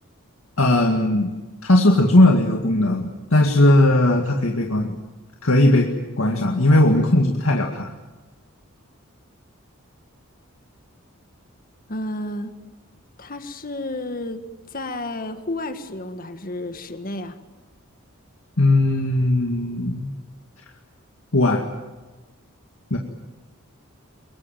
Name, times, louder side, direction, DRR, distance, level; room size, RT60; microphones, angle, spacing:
voice 1, 0.6-1.3 1.6-4.9 5.4-5.9 6.2-7.9 18.6-20.1 21.3-21.6 22.9-23.0, left 1 dB, 75° left, 2 dB, 2.1 m, -18 dB
voice 2, 11.9-12.5 13.2-14.4 14.7-17.4, left 1 dB, 40° left, 8 dB, 1.8 m, -31 dB
24.0 x 22.0 x 9.1 m, 1.2 s
head